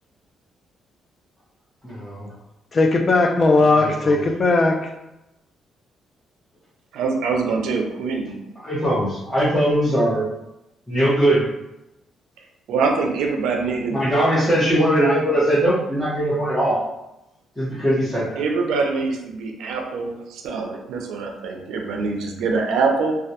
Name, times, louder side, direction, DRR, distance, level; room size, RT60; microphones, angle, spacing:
voice 1, 1.8-2.3 3.8-3.9 4.2-4.3 8.6-10.2 10.9-11.4 13.9-16.8 17.6-18.4, right 1 dB, 5° left, -11 dB, 0.8 m, -20 dB
voice 2, 2.7-4.9, left 3 dB, 40° left, 4 dB, 0.3 m, -18 dB
voice 3, 6.9-8.4 12.7-14.0 18.4-23.2, right 4 dB, 85° right, 1 dB, 0.4 m, -24 dB
2.2 x 2.1 x 2.7 m, 0.92 s
cardioid pair, 90°, 0 cm